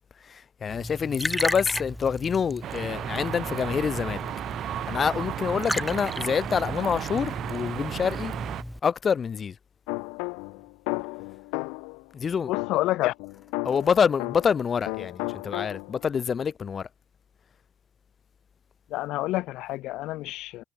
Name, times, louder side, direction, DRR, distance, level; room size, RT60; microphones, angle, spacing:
voice 1, 0.2-4.2 4.9-8.3 8.8-9.6 12.1-12.5 13.6-16.9, left 6 dB, 35° left, 2.3 m, -26 dB
Liquid, 0.7-8.8, equal, ahead, 7.0 m, -35 dB
sound 1, 2.6-8.6, right 11 dB, 55° right, 3.4 m, -34 dB
sound 2, 9.9-12.0 12.5-14.6 14.9-16.1, left 33 dB, 90° left, 6.1 m, -34 dB
voice 2, 12.5-13.1 18.9-20.6, left 17 dB, 70° left, 0.8 m, -28 dB
cardioid pair, 115°, 0 cm